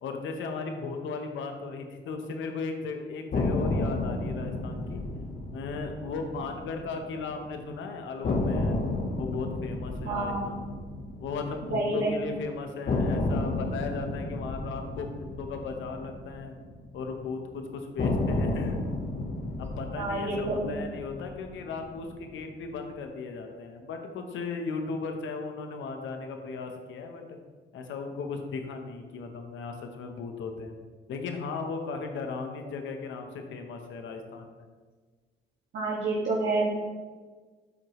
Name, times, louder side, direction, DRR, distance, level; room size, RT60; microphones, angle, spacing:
voice 1, 0.0-5.0 5.5-8.8 9.2-10.8 11.2-16.5 16.9-18.8 19.6-27.4 27.7-30.8 31.1-34.5, left 4 dB, 75° left, 4 dB, 1.0 m, -36 dB
sound 1, 3.3-7.4 7.7-7.8 8.2-12.3 12.9-17.2 18.0-22.3, left 2 dB, 45° left, 1.2 m, -32 dB
voice 2, 10.0-10.6 11.7-12.2 20.0-20.7 35.7-36.7, right 2 dB, 65° right, -7 dB, 1.8 m, -28 dB
12.5 x 4.7 x 3.1 m, 1.4 s
cardioid pair, 90°, 20 cm